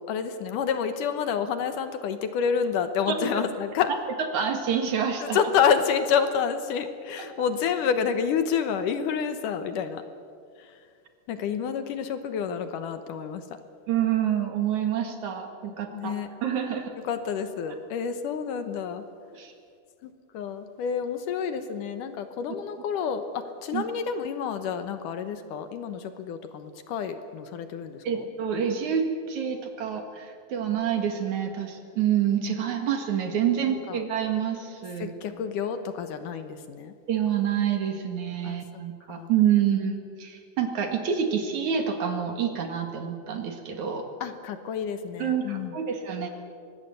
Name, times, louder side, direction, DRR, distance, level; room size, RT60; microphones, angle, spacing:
voice 1, 0.1-3.9 5.2-10.0 10.6-10.7 11.3-13.4 15.9-16.3 17.0-19.0 20.0-28.3 33.9-34.0 35.0-36.9 38.4-38.6 39.1-39.3 44.2-45.8, left 7 dB, 70° left, 9 dB, 2.5 m, -29 dB
voice 2, 4.3-5.4 13.9-16.1 16.4-16.9 19.3-19.5 23.7-23.8 28.0-35.1 37.1-44.1 45.2-46.3, right 8 dB, 60° right, 5 dB, 3.1 m, -27 dB
24.0 x 19.5 x 8.1 m, 2.2 s
omnidirectional pair, 4.0 m